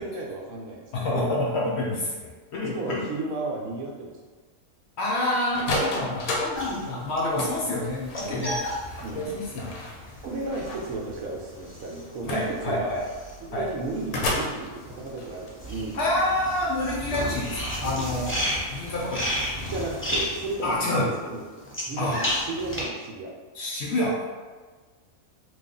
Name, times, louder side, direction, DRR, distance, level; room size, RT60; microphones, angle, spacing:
voice 1, 0.0-1.3 2.6-4.1 7.4-7.7 8.2-8.5 9.0-9.2 10.2-12.9 13.4-16.3 19.6-20.8 21.0-21.4 21.9-23.3, right 3 dB, 75° right, -1 dB, 1.0 m, -34 dB
voice 2, 0.9-3.0 5.0-8.6 8.8-9.8 12.3-13.0 13.5-13.6 16.0-18.3 18.7-19.4 20.6-21.0 22.0-22.2 23.5-24.3, left 1 dB, 60° left, -4 dB, 0.8 m, -28 dB
sound 1, 5.5-21.0, left 2 dB, 80° left, 1.1 m, -36 dB
sound 2, 6.5-14.0 14.3-22.8, equal, 20° left, 0.3 m, -33 dB
3.3 x 2.3 x 3.8 m, 1.4 s
omnidirectional pair, 1.5 m